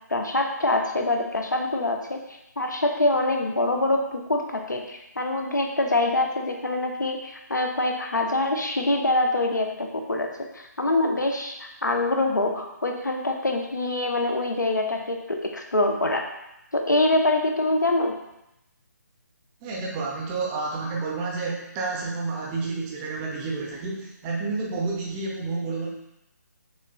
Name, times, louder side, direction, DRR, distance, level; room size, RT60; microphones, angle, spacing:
voice 1, 0.1-2.2 2.6-10.3 10.5-16.2 16.7-18.2, left 2 dB, 75° left, 3 dB, 0.8 m, -25 dB
voice 2, 19.6-25.9, right 3 dB, 15° right, -2 dB, 0.6 m, -30 dB
6.6 x 3.2 x 2.3 m, 0.86 s
figure-of-eight pair, 145°, 10 cm